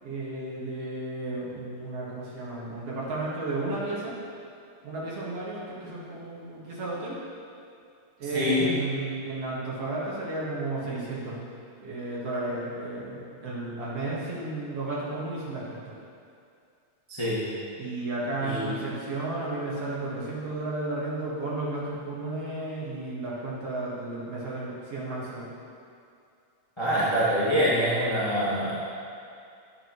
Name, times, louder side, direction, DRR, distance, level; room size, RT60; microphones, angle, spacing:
voice 1, 0.0-4.1 4.8-7.2 8.2-11.5 11.8-15.8 17.8-25.5, right 2 dB, 55° right, -7 dB, 2.4 m, -33 dB
voice 2, 8.3-8.7 17.1-17.4 18.4-18.7 26.8-28.7, equal, 25° left, -9 dB, 0.6 m, -25 dB
9.1 x 9.1 x 3.1 m, 2.4 s
omnidirectional pair, 3.5 m